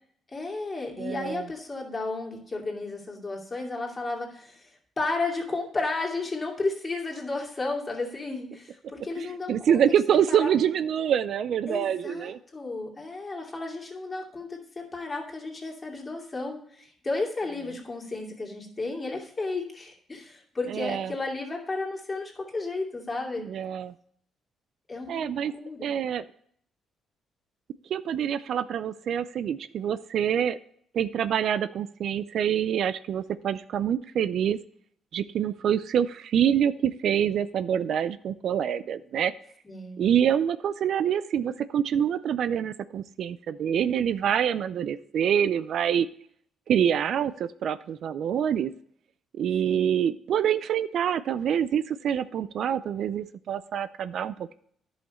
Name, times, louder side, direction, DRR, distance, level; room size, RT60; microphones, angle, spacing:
voice 1, 0.3-9.8 10.3-10.5 11.7-23.5 24.9-25.9 39.6-40.0 49.6-49.9, left 3 dB, 25° left, -1 dB, 2.6 m, -33 dB
voice 2, 1.0-1.5 9.2-12.4 20.7-21.1 23.4-23.9 25.1-25.5 25.8-26.2 27.9-30.6 30.9-34.6 35.1-39.3 40.0-46.1 46.7-48.7 49.3-54.5, right 9 dB, 70° right, 15 dB, 0.4 m, -26 dB
10.5 x 5.7 x 4.3 m, 0.63 s
cardioid pair, 90°, 0 cm